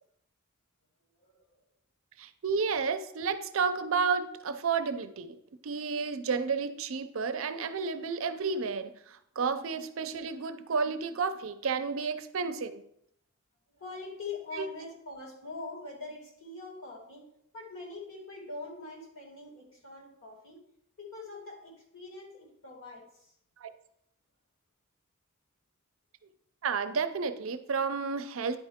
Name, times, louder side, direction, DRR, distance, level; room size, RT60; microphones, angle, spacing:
voice 1, 2.2-5.4 5.6-12.8 14.5-14.7 23.6-23.7 26.6-28.6, right 5 dB, 70° right, 11 dB, 0.5 m, -31 dB
voice 2, 13.7-17.3 17.5-20.6 21.0-23.3, left 3 dB, 70° left, -1 dB, 2.5 m, -43 dB
9.9 x 4.5 x 3.6 m, 0.73 s
head